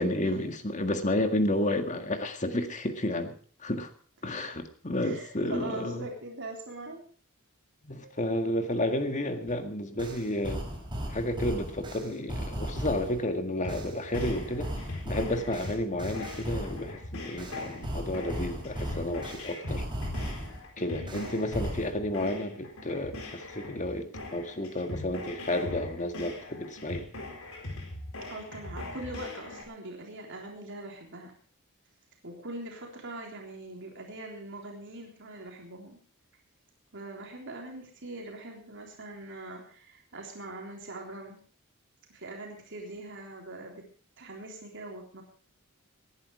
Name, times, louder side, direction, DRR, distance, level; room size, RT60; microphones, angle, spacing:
voice 1, 0.0-3.4 3.6-3.9 4.2-6.1 7.8-10.7 11.1-14.7 15.0-19.8 20.8-27.1, left 1 dB, 35° left, 7 dB, 1.9 m, -31 dB
voice 2, 5.0-7.0 8.0-8.1 21.0-21.3 28.3-31.3 32.2-36.0 36.9-41.4 42.1-43.9 44.2-45.2, right 2 dB, 60° right, 0 dB, 3.6 m, -42 dB
sound 1, 9.5-9.6 10.0-13.2 13.7-16.9 17.4-20.6 21.1-21.9, equal, 20° right, 4.2 m, -37 dB
sound 2, 13.6-29.6, left 2 dB, 75° left, 4.1 m, -41 dB
19.5 x 11.0 x 4.8 m, 0.43 s
head